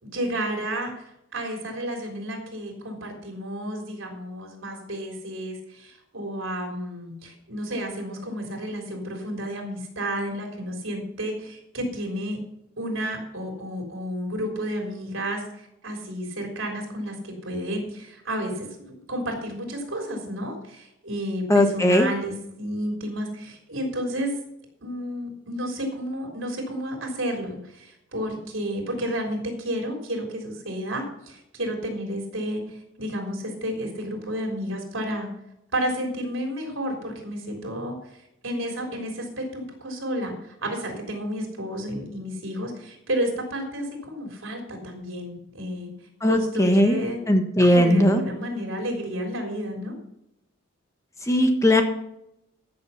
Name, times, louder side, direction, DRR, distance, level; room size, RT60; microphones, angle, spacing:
voice 1, 0.0-12.4 12.8-24.4 24.8-35.3 35.7-38.2 38.4-45.9 46.2-47.2 47.6-49.9, equal, 80° right, 2 dB, 3.7 m, -31 dB
voice 2, 21.5-22.1 46.2-47.0 47.3-48.2 51.2-51.8, left 1 dB, 15° left, 5 dB, 1.3 m, -18 dB
14.0 x 7.0 x 5.8 m, 0.80 s
head